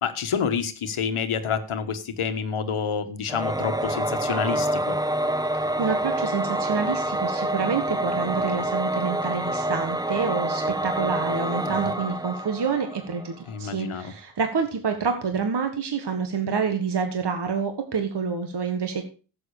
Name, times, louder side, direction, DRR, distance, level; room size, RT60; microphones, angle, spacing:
voice 1, 0.0-5.0 11.5-11.8 13.5-14.1, left 6 dB, 80° left, 9 dB, 1.4 m, -28 dB
Singing / Musical instrument, 3.3-13.3, right 1 dB, 10° right, 0.8 m, -27 dB
voice 2, 5.5-19.0, right 5 dB, 55° right, 5 dB, 1.6 m, -28 dB
11.5 x 7.8 x 4.9 m, 0.36 s
cardioid pair, 65°, 49 cm